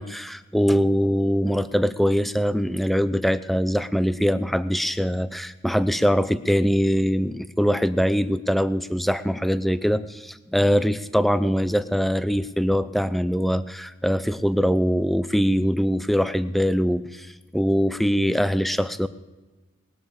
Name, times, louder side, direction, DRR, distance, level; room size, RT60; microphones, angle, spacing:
voice 1, 0.0-17.3 17.5-19.1, equal, ahead, 13 dB, 0.4 m, -22 dB
19.5 x 8.7 x 7.1 m, 1.2 s
head